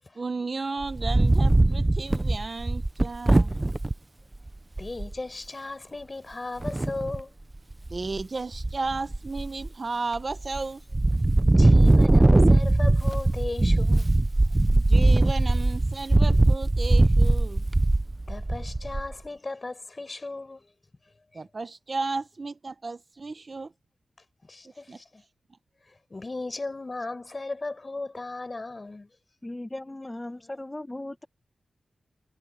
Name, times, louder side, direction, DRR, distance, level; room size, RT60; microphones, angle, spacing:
voice 1, 0.1-3.6 7.9-10.8 14.7-17.6 21.3-23.7 24.9-25.0, right 3 dB, 40° right, 1.1 m, -34 dB
Wind, 0.8-3.9 4.5-4.6 4.8-5.1 6.6-7.2 7.7-8.2 8.5-9.7 10.2-10.6 10.9-19.1, right 2 dB, 20° right, 0.8 m, -21 dB
voice 2, 4.8-7.3 11.6-14.1 18.3-20.7 24.5-25.2 26.1-29.1, left 2 dB, 30° left, 5.6 m, -36 dB
voice 3, 29.4-31.3, left 1 dB, 15° left, 1.6 m, -37 dB
wide cardioid pair, 80°, 0 cm